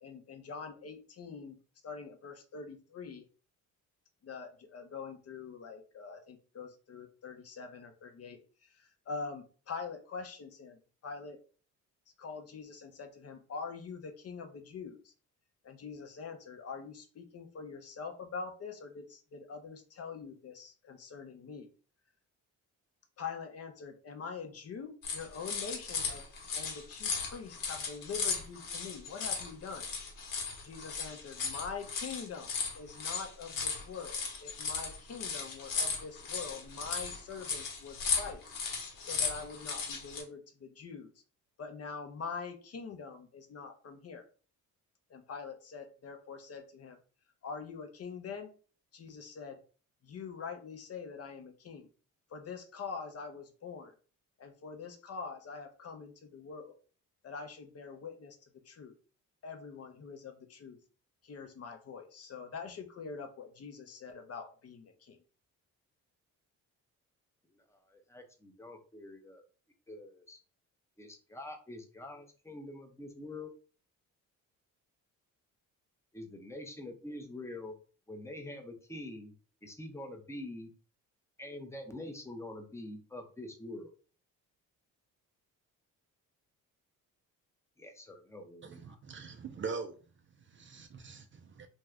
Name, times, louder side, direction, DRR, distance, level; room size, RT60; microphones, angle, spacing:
voice 1, 0.0-1.6 1.8-3.3 4.2-11.4 12.2-15.1 15.6-21.7 23.2-26.2 26.5-29.9 30.6-32.5 32.8-38.4 39.0-41.1 41.6-44.2 45.1-47.0 47.4-48.5 48.9-49.6 50.0-51.9 52.3-54.0 54.4-56.8 57.2-58.9 59.4-60.8 61.2-65.2, left 5 dB, 45° left, 0.7 m, -44 dB
sound 1, 25.0-40.2, left 5 dB, 75° left, 1.1 m, -36 dB
voice 2, 67.6-69.4 69.9-70.4 71.0-73.5 76.1-77.7 78.1-79.3 79.6-80.7 81.4-83.9 87.8-89.0, left 1 dB, 10° left, 0.7 m, -45 dB
voice 3, 88.6-89.9 90.4-91.7, right 5 dB, 35° right, 0.4 m, -42 dB
2.6 x 2.4 x 3.3 m
cardioid pair, 95°, 33 cm